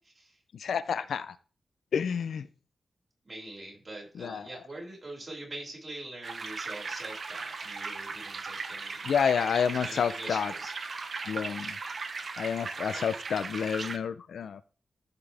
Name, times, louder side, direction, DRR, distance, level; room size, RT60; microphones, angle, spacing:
voice 1, 0.0-0.4 3.2-9.0 9.8-10.7 12.9-13.2, right 2 dB, 35° right, -3 dB, 5.7 m, -44 dB
voice 2, 0.5-1.4 1.9-2.5 4.2-4.5 9.0-10.5 11.3-11.8 12.4-14.6, left 7 dB, 85° left, 13 dB, 0.6 m, -29 dB
sound 1, 6.2-14.0, right 4 dB, 55° right, 1.0 m, -38 dB
13.5 x 5.8 x 3.5 m, 0.37 s
wide cardioid pair, 95°, 0 cm